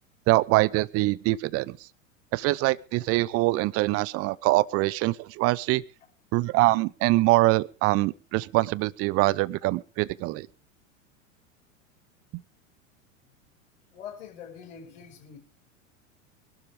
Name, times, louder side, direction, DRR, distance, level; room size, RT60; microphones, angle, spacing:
voice 1, 0.3-1.8 2.3-5.8 6.3-10.5, right 20 dB, 35° right, 22 dB, 0.7 m, -24 dB
voice 2, 13.9-15.4, left 8 dB, 60° left, 1 dB, 5.7 m, -43 dB
24.0 x 12.0 x 3.6 m, 0.37 s
figure-of-eight pair, 85°, 40 cm